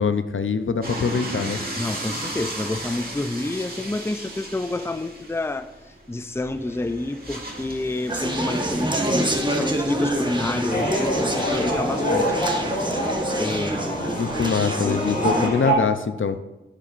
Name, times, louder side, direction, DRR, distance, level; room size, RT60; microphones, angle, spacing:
voice 1, 0.0-1.6 14.2-16.4, left 5 dB, 70° left, 10 dB, 0.6 m, -23 dB
sound 1, 0.8-13.4, right 1 dB, 45° right, 2.1 m, -37 dB
voice 2, 1.8-5.7 6.1-12.3 12.5-12.9 13.4-14.2 14.8-15.7, left 2 dB, 10° left, 11 dB, 0.5 m, -29 dB
Conversation, 8.1-15.5, right 1 dB, 20° right, 1.3 m, -27 dB
sound 2, 10.7-15.7, equal, 45° left, 2.8 m, -26 dB
10.5 x 8.5 x 2.5 m, 1.0 s
wide cardioid pair, 50°, 21 cm